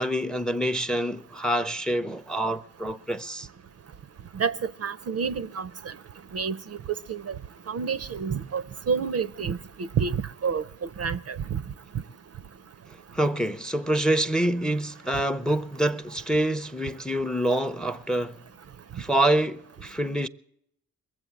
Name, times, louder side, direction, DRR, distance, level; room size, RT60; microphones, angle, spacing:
voice 1, 0.0-3.5 13.1-18.4 19.0-20.3, right 1 dB, ahead, 0.6 m, -26 dB
voice 2, 4.3-5.7 6.3-6.6 7.1-7.3 7.7-10.6 11.0-11.6, right 6 dB, 45° right, 0.5 m, -29 dB
22.0 x 7.7 x 8.6 m
cardioid pair, 65°, 36 cm